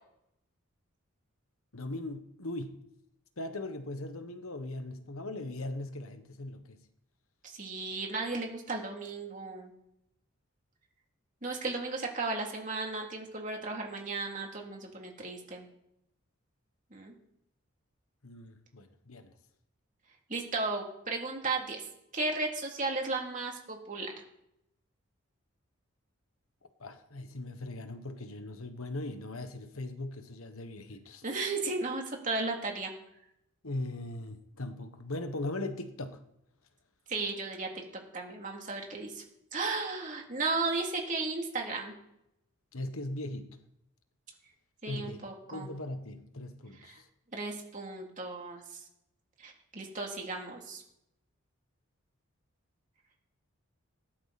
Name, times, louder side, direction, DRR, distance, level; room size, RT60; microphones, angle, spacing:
voice 1, 1.7-2.8 3.4-6.8 18.2-19.3 26.8-31.2 33.6-36.2 42.7-43.6 44.9-45.2 45.5-47.0, left 2 dB, 75° left, 8 dB, 1.4 m, -39 dB
voice 2, 7.4-9.7 11.4-15.7 16.9-17.1 20.3-21.8 22.1-24.1 31.2-32.9 37.1-37.7 38.1-39.2 39.5-41.9 44.8-45.7 46.8-47.0 47.3-48.6 49.4-50.8, right 3 dB, 35° right, 0 dB, 3.0 m, -35 dB
19.0 x 11.5 x 4.3 m, 0.80 s
head